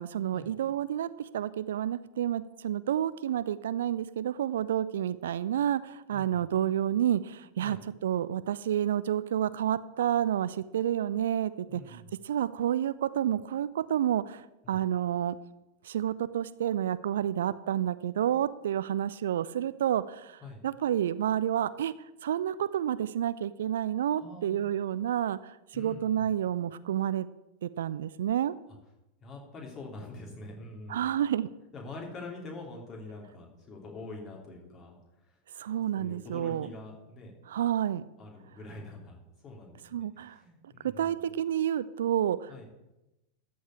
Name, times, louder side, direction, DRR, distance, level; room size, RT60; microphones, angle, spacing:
voice 1, 0.0-15.4 15.8-21.9 22.2-27.3 27.6-28.5 30.9-31.5 35.6-36.7 37.5-38.0 39.9-40.4 40.8-42.6, right 10 dB, 60° right, 15 dB, 0.4 m, -30 dB
voice 2, 6.1-6.4 7.6-7.8 11.7-12.1 14.6-14.8 20.4-20.6 24.2-24.6 25.7-26.3 29.2-31.1 31.7-35.0 35.2-35.3 35.9-37.3 38.2-39.2 39.4-41.2 42.5-42.7, left 2 dB, 25° left, 0 dB, 3.2 m, -45 dB
13.5 x 4.7 x 8.7 m, 0.96 s
figure-of-eight pair, 90°, 0 cm